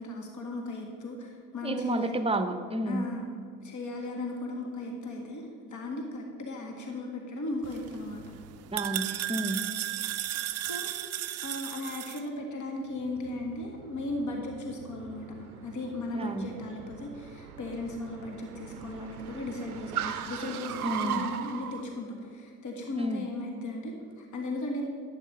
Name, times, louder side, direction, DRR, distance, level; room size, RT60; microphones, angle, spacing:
voice 1, 0.0-2.3 2.9-3.2 3.6-8.2 10.7-10.9 11.4-24.9, left 2 dB, 40° left, 1 dB, 1.8 m, -36 dB
voice 2, 1.6-3.0 8.7-9.6 16.1-16.5 20.8-21.2 23.0-23.3, right 1 dB, 15° right, 9 dB, 0.9 m, -31 dB
sound 1, 7.6-12.2, right 13 dB, 35° right, 0.5 m, -35 dB
Car, 12.9-21.8, right 9 dB, 80° right, 0.6 m, -39 dB
11.5 x 8.1 x 5.4 m, 2.3 s
figure-of-eight pair, 45°, 44 cm